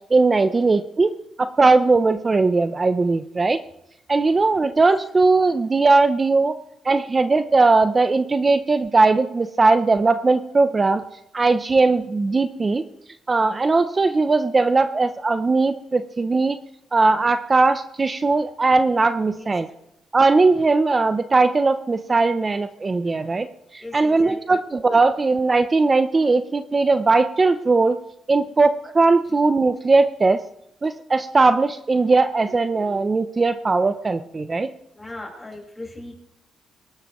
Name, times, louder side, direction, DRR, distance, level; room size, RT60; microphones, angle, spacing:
voice 1, 0.1-3.6 4.1-6.6 6.8-11.0 11.3-12.8 13.3-16.6 16.9-19.7 20.1-28.0 28.3-30.4 30.8-34.7, right 3 dB, 20° right, 10 dB, 0.6 m, -19 dB
voice 2, 23.8-24.6 34.9-36.1, left 2 dB, 10° left, -1 dB, 5.1 m, -38 dB
24.5 x 12.5 x 3.1 m, 0.80 s
cardioid pair, 140°, 0 cm